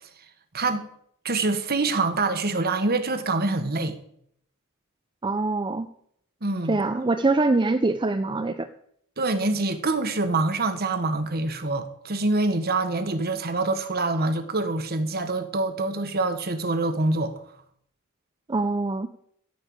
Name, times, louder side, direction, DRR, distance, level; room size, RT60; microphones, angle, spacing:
voice 1, 0.5-0.9 1.2-4.0 6.4-6.8 9.2-17.3, right 3 dB, 45° right, 1.3 m, -25 dB
voice 2, 5.2-5.9 6.7-8.7 18.5-19.1, right 3 dB, 20° right, 0.5 m, -24 dB
15.0 x 5.5 x 8.7 m
head